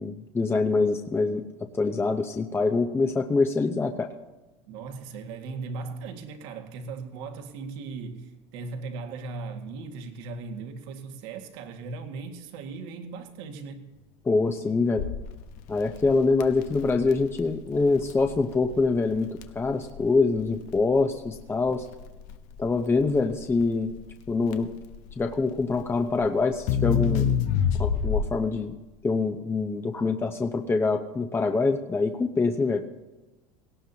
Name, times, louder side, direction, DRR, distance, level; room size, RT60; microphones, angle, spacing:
voice 1, 0.0-1.4 1.8-4.1 14.2-15.0 15.7-21.9 22.6-23.9 24.3-24.7 25.2-27.3 27.8-28.7 29.0-32.8, left 3 dB, 15° left, 4 dB, 0.8 m, -25 dB
voice 2, 4.7-13.9, right 4 dB, 75° right, 4 dB, 1.9 m, -38 dB
Crackle, 15.0-28.6, left 7 dB, 65° left, 1.1 m, -29 dB
18.5 x 18.0 x 2.9 m, 1.1 s
supercardioid pair, 115°, 14 cm